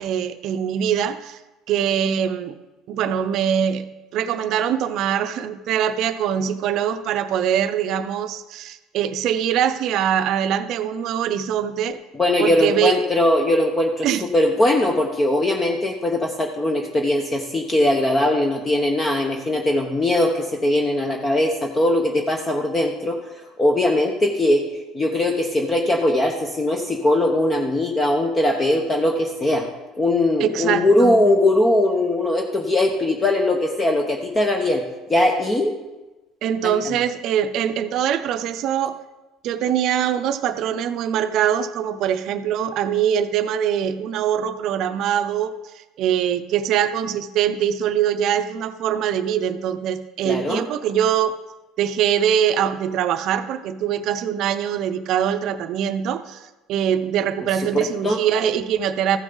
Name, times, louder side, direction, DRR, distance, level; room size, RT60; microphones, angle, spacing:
voice 1, 0.0-1.4 1.7-2.5 2.9-3.9 4.1-12.0 12.4-13.0 14.0-14.2 30.4-31.2 36.4-39.0 39.4-51.3 51.8-59.2, right 9 dB, 60° right, 10 dB, 0.6 m, -23 dB
voice 2, 12.1-14.1 14.3-23.2 23.6-24.7 24.9-29.7 30.0-34.8 35.1-35.8 36.6-37.0 50.2-50.6 58.0-58.2, left 1 dB, 20° left, 3 dB, 0.9 m, -20 dB
14.5 x 6.1 x 3.9 m, 1.1 s
cardioid pair, 115°, 0 cm